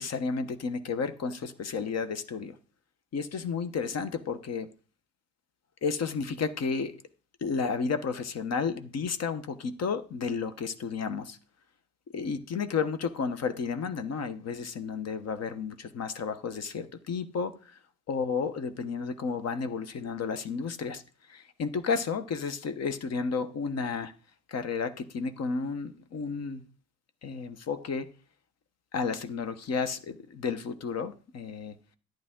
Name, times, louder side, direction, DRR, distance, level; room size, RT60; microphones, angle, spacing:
voice 1, 0.0-2.5 3.1-4.7 5.8-6.9 7.4-11.4 12.1-17.6 18.1-21.0 21.3-24.1 24.5-26.6 27.2-28.1 28.9-31.7, left 5 dB, 55° left, 1.1 m, -32 dB
11.0 x 9.2 x 3.7 m
cardioid pair, 90°, 30 cm